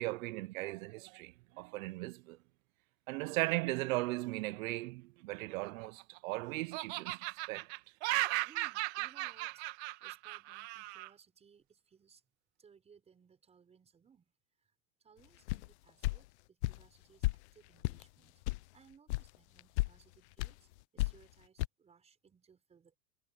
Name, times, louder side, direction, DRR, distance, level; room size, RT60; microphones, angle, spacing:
voice 1, 0.0-2.4 3.1-7.2 7.5-7.7, right 20 dB, 75° right, 0.6 m, -37 dB
Laughter, 5.5-6.3 6.7-11.1, right 20 dB, 55° right, 1.7 m, -37 dB
voice 2, 8.4-12.2 12.6-14.3 14.6-14.7 15.0-18.4 18.7-23.0, right 6 dB, 15° right, 6.1 m, -64 dB
sound 1, 15.5-15.7 16.0-16.2 16.6-16.8 17.2-17.4 17.8-18.0 18.5-18.6 19.1-19.3 19.6-19.9 20.4-20.5 21.0-21.2 21.6-21.7, left 20 dB, 55° left, 0.6 m, -32 dB
supercardioid pair, 170°, 41 cm